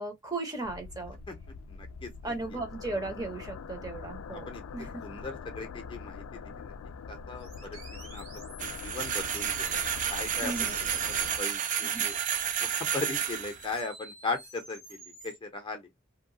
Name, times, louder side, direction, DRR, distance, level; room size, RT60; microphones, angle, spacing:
voice 1, 0.0-1.2 2.2-4.5 4.7-5.0 10.4-10.9 11.8-12.0, right 2 dB, 20° right, 0.7 m, -36 dB
sound 1, 0.6-11.4, left 5 dB, 70° left, 0.3 m, -43 dB
voice 2, 1.7-2.3 4.5-4.6 5.0-6.7 7.1-8.2 8.6-9.8 10.1-10.7 11.4-12.1 12.6-15.9, left 3 dB, 25° left, 0.6 m, -38 dB
sound 2, 7.4-15.4, right 3 dB, 85° right, 1.6 m, -49 dB
sound 3, 8.6-13.8, right 8 dB, 40° right, 0.3 m, -31 dB
2.8 x 2.2 x 2.6 m
head